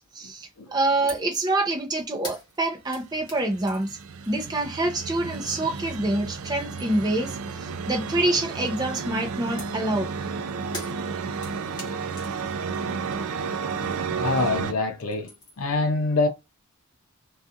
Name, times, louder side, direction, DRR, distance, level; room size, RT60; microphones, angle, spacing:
voice 1, 0.1-3.9 4.3-10.1, right 2 dB, 20° right, 0.5 m, -26 dB
sound 1, 1.1-1.4 1.6-6.1 6.5-7.2 9.6-14.7 15.0-15.7, left 1 dB, 20° left, 0.9 m, -45 dB
sound 2, 3.2-14.7, right 5 dB, 75° right, 0.4 m, -32 dB
voice 2, 14.2-15.3 15.6-16.3, left 3 dB, 80° left, 0.5 m, -24 dB
2.4 x 2.3 x 2.7 m
head